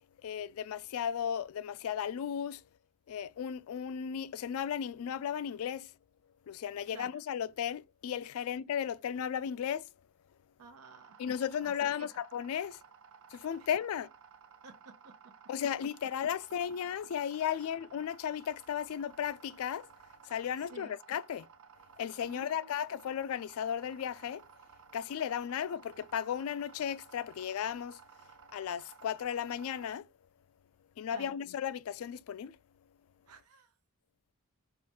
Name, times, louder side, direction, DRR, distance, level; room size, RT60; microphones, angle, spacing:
voice 1, 0.2-2.6 3.1-5.9 6.5-9.9 11.2-12.8 13.3-14.1 15.5-19.9 20.3-21.5 22.0-24.4 24.9-28.0 28.5-30.1 31.0-32.6, left 8 dB, 65° left, 0.3 m, -35 dB
voice 2, 10.6-11.2 11.6-12.1 14.6-14.9 20.7-20.9 22.2-22.8 31.1-31.4 33.3-33.7, right 4 dB, 90° right, 0.9 m, -52 dB
sound 1, 10.8-30.0, right 7 dB, 60° right, 0.5 m, -57 dB
4.8 x 2.5 x 4.2 m
head